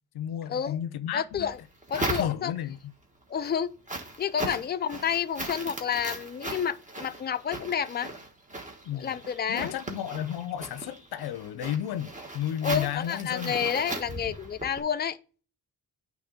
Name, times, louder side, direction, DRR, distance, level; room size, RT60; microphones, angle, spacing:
voice 1, 0.1-1.5 2.0-2.8 4.5-4.6 8.8-9.2 9.5-13.5, left 10 dB, 90° left, 0.6 m, -33 dB
voice 2, 1.1-1.6 1.9-2.5 3.3-3.7 4.2-8.1 8.9-9.7 12.6-15.2, left 8 dB, 25° left, 0.5 m, -29 dB
sound 1, 1.3-2.8 3.2-14.8, right 1 dB, 20° right, 1.4 m, -38 dB
8.7 x 3.2 x 5.2 m
cardioid pair, 105°, 37 cm